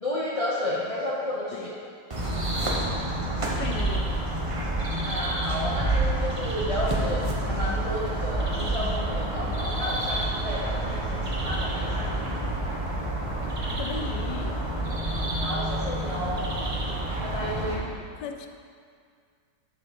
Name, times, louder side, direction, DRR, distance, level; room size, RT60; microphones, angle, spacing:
voice 1, 0.0-1.8 5.0-12.1 15.4-16.5 17.2-18.0, left 1 dB, 50° left, -7 dB, 0.4 m, -32 dB
sound 1, 2.1-17.8, right 1 dB, 35° right, 0.5 m, -28 dB
voice 2, 3.6-4.1 13.8-14.6 17.6-17.9 18.2-18.5, left 7 dB, 70° left, 6 dB, 1.1 m, -37 dB
8.4 x 4.2 x 5.0 m, 2.1 s
omnidirectional pair, 2.0 m